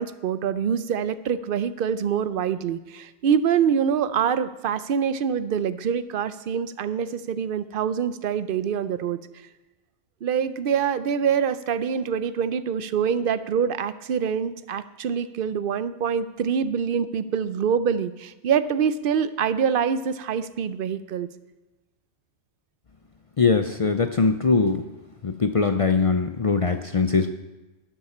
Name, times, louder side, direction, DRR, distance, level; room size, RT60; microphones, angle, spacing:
voice 1, 0.0-9.2 10.2-21.3, right 7 dB, 60° right, 14 dB, 0.7 m, -25 dB
voice 2, 23.4-24.8 25.2-27.3, left 4 dB, 45° left, 8 dB, 0.4 m, -21 dB
12.0 x 11.0 x 4.3 m, 1.1 s
omnidirectional pair, 1.2 m